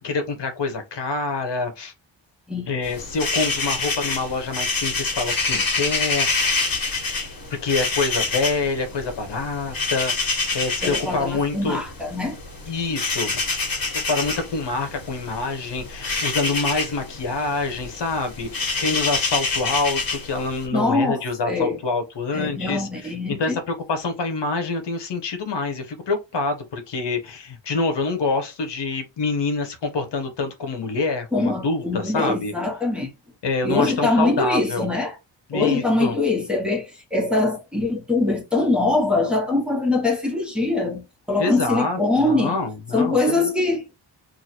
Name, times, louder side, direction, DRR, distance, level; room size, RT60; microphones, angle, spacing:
voice 1, 0.0-1.9 2.7-6.5 7.6-11.8 12.7-13.3 14.1-22.9 23.3-32.5 33.4-34.9 35.5-36.2 41.4-43.5, left 3 dB, 65° left, 1.1 m, -26 dB
sound 1, 2.8-20.7, left 3 dB, 50° left, 1.7 m, -27 dB
voice 2, 10.8-12.4 20.7-21.8 22.3-23.6 31.3-33.1 33.6-35.2 35.5-42.6 42.9-43.9, left 2 dB, ahead, 1.2 m, -23 dB
2.9 x 2.5 x 4.2 m
cardioid pair, 90°, 46 cm